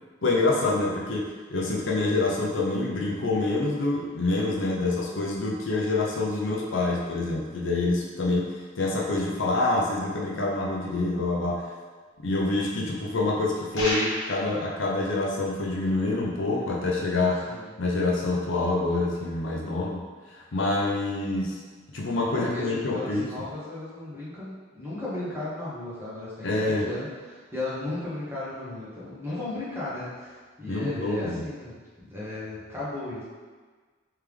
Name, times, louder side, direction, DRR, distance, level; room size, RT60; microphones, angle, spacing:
voice 1, 0.2-8.5 8.8-11.6 12.2-17.5 17.8-20.0 20.3-21.6 21.9-23.3 26.4-26.9 30.7-31.4, left 2 dB, 70° left, -3 dB, 0.6 m, -26 dB
sound 1, 13.7-14.5, left 1 dB, 90° left, 1.4 m, -29 dB
voice 2, 22.4-33.2, left 2 dB, 10° right, -10 dB, 1.1 m, -35 dB
3.3 x 3.2 x 3.5 m, 1.4 s
head